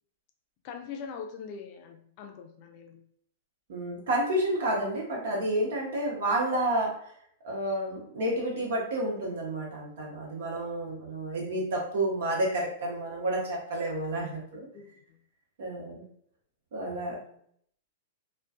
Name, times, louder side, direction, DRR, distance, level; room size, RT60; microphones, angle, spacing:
voice 1, 0.6-3.0 14.5-15.2 17.1-17.4, left 6 dB, 45° left, 4 dB, 0.4 m, -43 dB
voice 2, 3.7-7.0 7.4-14.7 15.6-16.0 16.7-17.2, right 1 dB, 65° right, -2 dB, 0.9 m, -30 dB
2.5 x 2.2 x 2.4 m, 0.66 s
hypercardioid pair, 110°, 0 cm